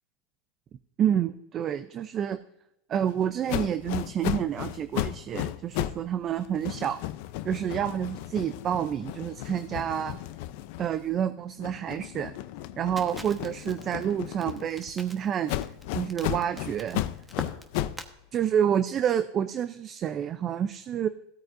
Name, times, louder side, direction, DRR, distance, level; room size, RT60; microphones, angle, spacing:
voice 1, 1.0-2.4 2.9-7.0 7.4-10.2 10.8-12.3 12.8-15.5 15.9-17.0 18.3-21.1, right 9 dB, 35° right, 11 dB, 0.5 m, -28 dB
sound 1, 3.5-6.1 6.4-11.2 11.6-14.9 15.5-18.1, left 14 dB, 65° left, 0.5 m, -34 dB
Crackle, 13.0-18.1, right 2 dB, 10° right, 1.2 m, -43 dB
16.5 x 8.9 x 2.6 m, 0.84 s
supercardioid pair, 120°, 0 cm